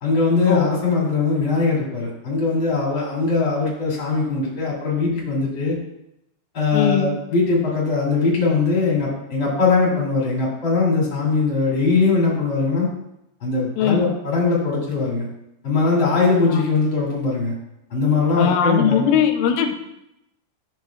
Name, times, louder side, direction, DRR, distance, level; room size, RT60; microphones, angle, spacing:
voice 1, 0.0-5.8 6.5-12.9 13.4-15.3 15.6-17.5 17.9-19.1, left 4 dB, 30° left, -5 dB, 2.5 m, -20 dB
voice 2, 6.7-7.1 13.8-14.0 16.5-16.6 18.4-19.7, left 8 dB, 85° left, 4 dB, 3.3 m, -20 dB
11.5 x 7.7 x 2.4 m, 0.83 s
omnidirectional pair, 5.7 m